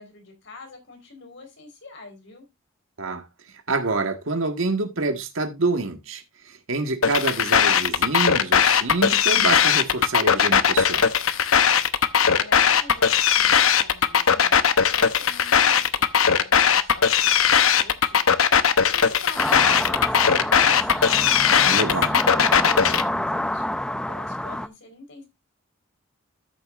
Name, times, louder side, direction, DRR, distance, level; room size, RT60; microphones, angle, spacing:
voice 1, 0.0-2.4 12.3-25.2, left 3 dB, 60° left, 4.3 m, -45 dB
voice 2, 3.7-6.2 6.5-11.1 21.6-22.1, right 3 dB, 70° right, 1.7 m, -26 dB
sound 1, 7.0-23.0, left 7 dB, 80° left, 0.9 m, -18 dB
sound 2, 19.4-24.7, left 1 dB, 5° left, 0.5 m, -27 dB
13.0 x 7.3 x 2.5 m
head